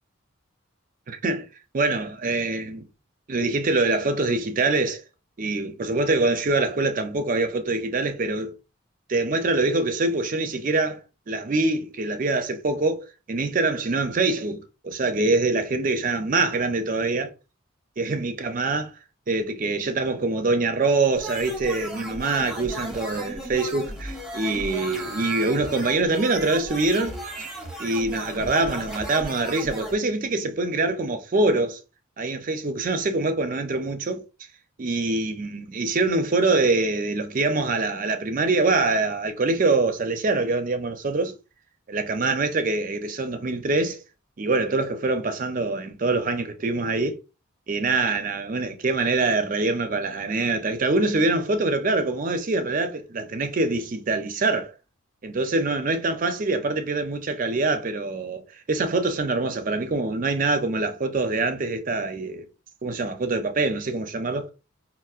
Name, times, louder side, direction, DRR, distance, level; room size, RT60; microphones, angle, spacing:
voice 1, 1.1-1.5 1.7-2.8 3.3-5.0 5.4-8.5 9.1-11.0 11.3-17.3 18.0-18.9 19.3-27.2 27.8-31.8 32.2-34.2 34.8-41.3 41.9-44.0 44.4-47.2 47.7-54.7 55.2-58.4 58.7-62.4 62.8-64.5, right 3 dB, 40° right, 0.5 m, -24 dB
sound 1, 21.1-29.9, equal, 5° right, 0.7 m, -36 dB
5.3 x 2.0 x 2.4 m
head